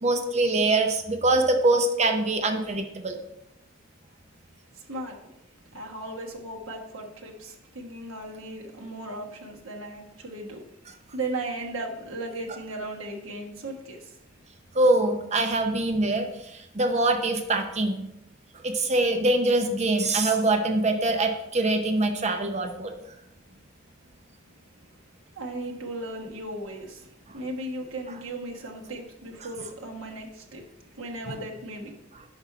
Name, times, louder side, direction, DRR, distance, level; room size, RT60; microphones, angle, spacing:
voice 1, 0.0-3.2 14.7-18.1 18.6-22.9 31.3-31.4 32.1-32.2, right 2 dB, 35° right, 0.7 m, -24 dB
voice 2, 4.7-5.2 5.7-10.7 11.1-14.2 25.3-27.1 27.3-30.6 31.0-32.0, right 2 dB, 80° right, 1.3 m, -36 dB
5.8 x 5.2 x 4.7 m
head